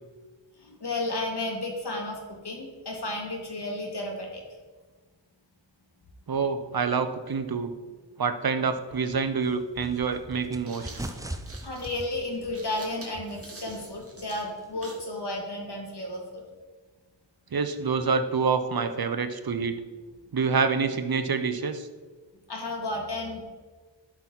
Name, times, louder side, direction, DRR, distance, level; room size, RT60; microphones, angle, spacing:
voice 1, 0.6-4.4 11.6-16.4 22.5-23.4, left 2 dB, 55° left, 0 dB, 2.3 m, -33 dB
voice 2, 6.3-7.7 8.2-10.9 17.5-19.8 20.3-21.9, right 5 dB, 50° right, 9 dB, 0.8 m, -27 dB
sound 1, 8.9-15.0, right 1 dB, 5° right, 0.6 m, -42 dB
sound 2, 10.5-15.1, right 2 dB, 30° right, 2.0 m, -47 dB
11.5 x 6.0 x 4.0 m, 1.4 s
wide cardioid pair, 60°, 46 cm